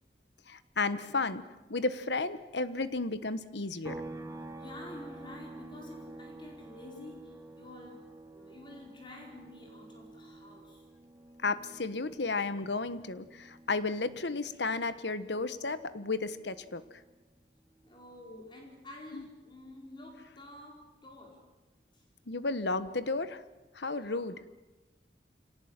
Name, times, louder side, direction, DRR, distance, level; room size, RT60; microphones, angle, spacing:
voice 1, 0.5-1.4 1.7-4.0 11.4-16.8 19.1-19.2 22.3-23.4 23.7-24.4, left 3 dB, 80° left, 13 dB, 1.3 m, -33 dB
sound 1, 3.8-17.4 17.7-19.9, right 2 dB, 15° right, 1.4 m, -50 dB
voice 2, 4.6-10.9 17.8-21.5 21.9-22.0 23.9-24.3, left 1 dB, 25° left, 0 dB, 4.7 m, -49 dB
26.5 x 18.5 x 8.9 m, 1.1 s
head